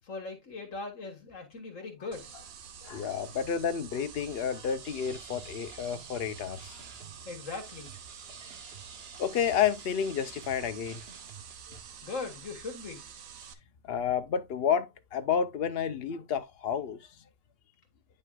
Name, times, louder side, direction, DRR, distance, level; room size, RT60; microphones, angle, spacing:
voice 1, 0.0-2.3 7.3-7.9 12.0-13.1, left 3 dB, 70° left, 2.0 m, -39 dB
sound 1, 2.1-13.5, right 7 dB, 75° right, 1.3 m, -48 dB
voice 2, 2.8-6.8 9.2-11.0 13.8-17.0, left 7 dB, 50° left, 1.0 m, -30 dB
sound 2, 4.8-11.8, right 5 dB, 50° right, 1.3 m, -51 dB
9.4 x 5.3 x 2.4 m
omnidirectional pair, 1.4 m